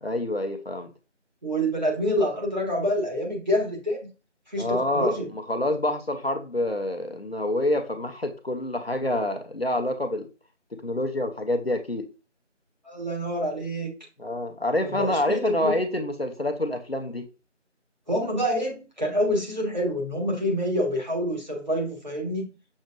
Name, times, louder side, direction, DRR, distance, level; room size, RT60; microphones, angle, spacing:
voice 1, 0.0-0.9 4.6-10.3 10.7-12.1 14.2-17.3, left 1 dB, 55° left, 6 dB, 0.7 m, -27 dB
voice 2, 1.4-4.0 4.5-5.3 12.8-13.9 14.8-15.8 18.1-22.5, equal, 35° right, -2 dB, 1.5 m, -27 dB
6.3 x 3.1 x 2.4 m, 0.31 s
figure-of-eight pair, 180°, 36 cm